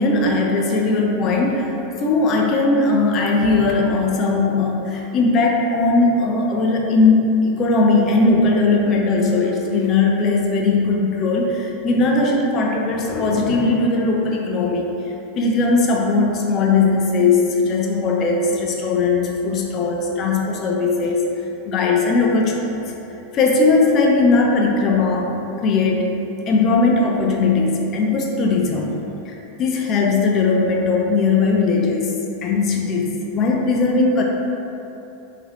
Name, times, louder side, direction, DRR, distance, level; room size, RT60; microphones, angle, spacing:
voice 1, 0.0-14.9 15.4-21.2 21.7-22.7 23.3-25.3 25.6-26.1 26.5-29.0 29.3-32.1 32.4-34.2, left 3 dB, 40° left, 0 dB, 0.5 m, -18 dB
3.8 x 2.8 x 2.9 m, 3.0 s
hypercardioid pair, 90°, 0 cm